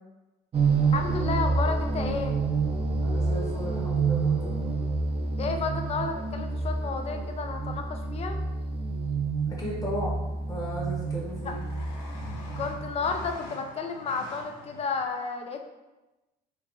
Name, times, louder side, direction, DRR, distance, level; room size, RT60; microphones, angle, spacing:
sound 1, 0.5-13.3, right 4 dB, 35° right, 0.5 m, -28 dB
voice 1, 0.9-2.4 5.4-8.4 11.4-11.6 12.6-15.6, left 4 dB, 40° left, 5 dB, 0.4 m, -32 dB
voice 2, 3.0-4.7 9.5-10.2 10.5-11.6, equal, 20° left, -4 dB, 1.2 m, -36 dB
sound 2, 4.5-4.6 6.2-6.9 9.2-9.3 9.5-10.0 10.3-15.1, left 2 dB, 85° left, 0.8 m, -46 dB
4.4 x 2.5 x 2.7 m, 1.1 s
cardioid pair, 110°, 17 cm